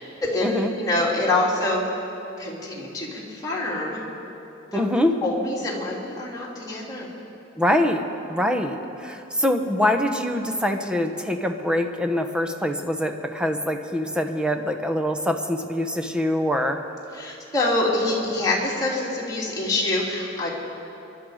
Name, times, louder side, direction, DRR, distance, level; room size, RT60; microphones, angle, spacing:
voice 1, 0.2-1.8 2.4-4.0 4.7-4.9 5.2-7.1 17.1-20.6, left 2 dB, 20° left, -5 dB, 2.9 m, -25 dB
voice 2, 4.7-5.1 7.6-8.0 8.3-16.8, left 1 dB, 5° right, 5 dB, 0.9 m, -24 dB
25.5 x 11.5 x 5.0 m, 2.9 s
head